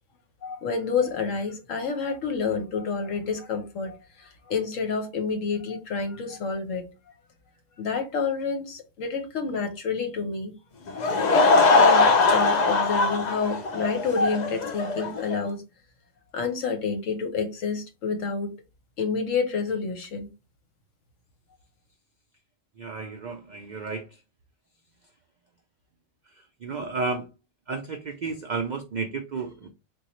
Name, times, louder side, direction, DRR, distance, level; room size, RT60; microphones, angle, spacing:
voice 1, 0.4-6.9 7.8-10.5 10.9-15.6 16.3-18.5 19.0-20.3, left 5 dB, 75° left, 1.1 m, -29 dB
Laughter / Crowd, 10.9-15.4, left 3 dB, 60° left, 0.4 m, -21 dB
voice 2, 22.8-24.1 26.6-27.3 27.7-29.7, right 4 dB, 90° right, 0.4 m, -32 dB
3.7 x 2.3 x 3.0 m
omnidirectional pair, 1.4 m